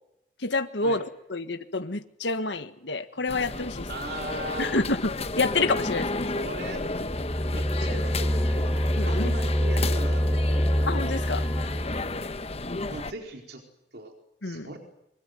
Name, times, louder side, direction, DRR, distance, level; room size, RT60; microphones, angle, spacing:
voice 1, 0.4-1.0 1.3-3.9 4.6-6.2 8.9-9.3 10.9-11.5 12.7-12.9 14.4-14.7, left 3 dB, 80° left, 9 dB, 1.7 m, -28 dB
sound 1, 3.3-13.1, left 2 dB, 35° left, 1.2 m, -33 dB
voice 2, 3.9-4.7 6.3-6.8 7.5-8.7 9.1-10.7 12.8-13.6 13.9-14.1 14.4-14.8, right 2 dB, 60° right, 3 dB, 4.5 m, -38 dB
sound 2, 7.0-12.2, equal, 5° right, 2.9 m, -26 dB
24.5 x 23.5 x 9.3 m, 0.83 s
head